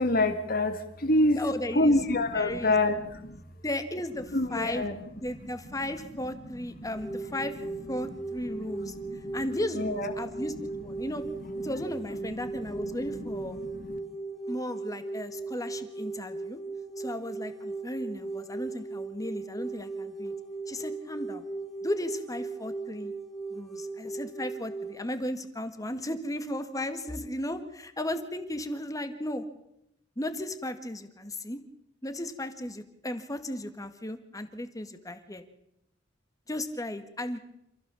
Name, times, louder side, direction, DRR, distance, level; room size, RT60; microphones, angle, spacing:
voice 1, 0.0-1.4 1.7-3.4 4.3-4.9 8.6-9.3 9.8-10.1 13.5-13.9, left 1 dB, 55° left, 8 dB, 2.5 m, -26 dB
voice 2, 1.3-2.0 2.3-2.8 3.6-4.9 5.1-7.5 7.9-9.0 9.3-11.2 11.6-13.6 14.5-16.6 17.0-20.3 20.7-21.4 21.8-23.1 23.5-29.4 30.2-31.6 32.0-35.4 36.5-37.4, left 1 dB, 20° left, 9 dB, 1.8 m, -35 dB
sound 1, 6.9-25.0, right 3 dB, ahead, 3.4 m, -38 dB
27.5 x 15.0 x 7.1 m, 0.80 s
head